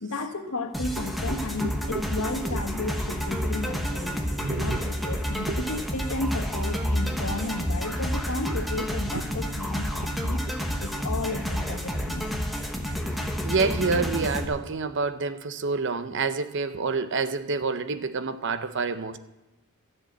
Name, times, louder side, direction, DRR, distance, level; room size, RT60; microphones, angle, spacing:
voice 1, 0.0-4.2 4.6-10.5 10.8-12.4, left 2 dB, 70° left, 5 dB, 1.5 m, -33 dB
sound 1, 0.7-14.5, equal, ahead, 1.1 m, -29 dB
voice 2, 1.6-2.0 4.4-4.8 8.5-8.6 13.4-19.2, right 4 dB, 55° right, 11 dB, 0.7 m, -28 dB
13.5 x 7.4 x 7.5 m, 1.0 s
head